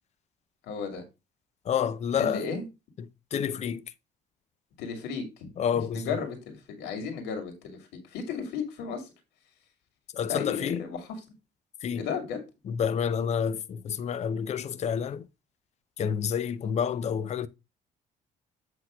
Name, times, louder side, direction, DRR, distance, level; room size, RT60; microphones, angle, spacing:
voice 1, 0.6-1.0 2.2-2.6 4.8-9.1 10.3-11.1 11.9-12.4, left 5 dB, 85° left, 2.1 m, -34 dB
voice 2, 1.6-2.4 3.0-3.8 5.6-6.2 10.1-10.8 11.8-12.1 12.7-15.3 16.0-17.5, left 7 dB, 40° left, 0.6 m, -29 dB
8.0 x 3.0 x 6.0 m
cardioid pair, 110°, 17 cm